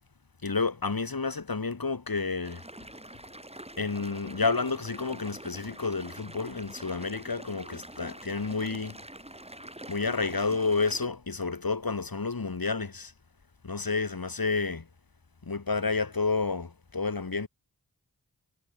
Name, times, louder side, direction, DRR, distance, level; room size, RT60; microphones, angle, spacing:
voice 1, 0.4-2.6 3.8-9.0 9.9-13.1 13.6-14.9 15.4-17.5, left 4 dB, 60° left, 3.5 m, -30 dB
sound 1, 2.4-11.1, right 1 dB, 15° right, 4.8 m, -45 dB
wide cardioid pair, 50°, 40 cm